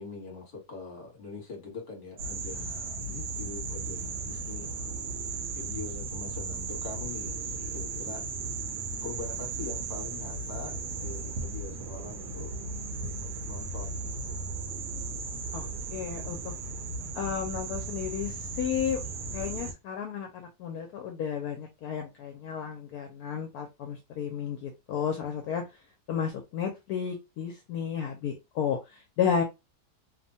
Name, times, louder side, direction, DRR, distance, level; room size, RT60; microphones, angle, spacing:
voice 1, 0.0-4.7 5.5-7.4 7.7-8.4 9.0-12.5 13.2-14.3, left 4 dB, 35° left, 1.1 m, -43 dB
sound 1, 2.2-19.7, right 3 dB, 80° right, 1.2 m, -36 dB
voice 2, 15.5-16.5 17.1-19.0 19.3-25.6 26.1-29.4, left 7 dB, 70° left, 1.0 m, -32 dB
2.9 x 2.1 x 2.6 m
omnidirectional pair, 1.8 m